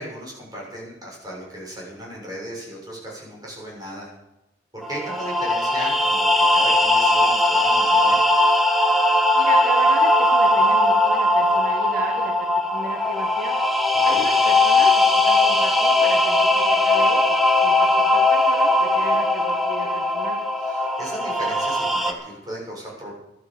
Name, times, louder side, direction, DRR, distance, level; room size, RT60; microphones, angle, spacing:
voice 1, 0.0-4.1 4.7-8.2 14.1-14.3 20.6-23.1, right 1 dB, 20° right, -4 dB, 7.2 m, -36 dB
sound 1, 4.8-22.1, left 2 dB, ahead, 1.1 m, -19 dB
voice 2, 9.3-12.3 12.7-13.6 14.0-20.4, right 2 dB, 55° right, 2 dB, 1.7 m, -35 dB
13.0 x 12.5 x 7.0 m, 0.96 s
head